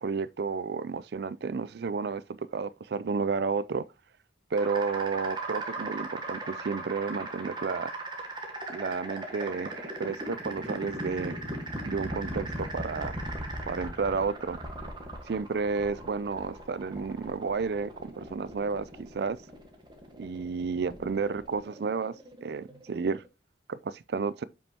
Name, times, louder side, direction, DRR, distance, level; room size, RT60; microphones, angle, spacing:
voice 1, 0.0-3.9 4.5-7.9 8.7-11.4 11.8-13.1 13.7-14.6 15.3-19.4 20.2-22.1 22.4-23.2 23.7-24.4, right 5 dB, 60° right, 0.4 m, -31 dB
sound 1, 4.5-23.3, right 2 dB, 25° right, 1.3 m, -38 dB
7.3 x 5.3 x 2.8 m
head